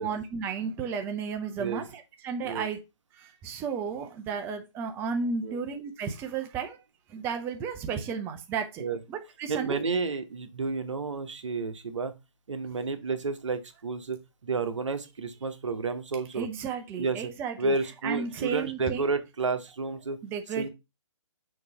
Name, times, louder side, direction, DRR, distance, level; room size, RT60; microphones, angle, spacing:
voice 1, 0.0-2.8 3.4-6.8 7.1-8.8 9.1-9.8 16.3-17.7 18.0-19.1 20.2-20.7, right 6 dB, 15° right, 0.6 m, -33 dB
voice 2, 9.5-12.1 12.5-16.5 17.0-17.3 17.6-20.2 20.6-20.7, right 4 dB, 70° right, 1.2 m, -31 dB
6.6 x 3.0 x 5.3 m
figure-of-eight pair, 140°, 16 cm